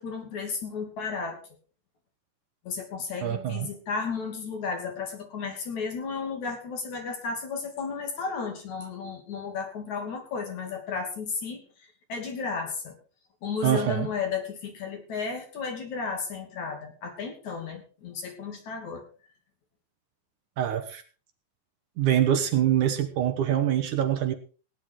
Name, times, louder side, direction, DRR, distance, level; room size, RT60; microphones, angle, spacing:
voice 1, 0.0-1.4 2.6-11.6 12.1-12.9 13.4-19.0, left 5 dB, 55° left, 3 dB, 4.1 m, -33 dB
voice 2, 3.2-3.7 13.6-14.1 20.6-21.0 22.0-24.3, right 10 dB, 70° right, 7 dB, 2.3 m, -24 dB
17.0 x 10.0 x 4.7 m, 0.37 s
omnidirectional pair, 4.1 m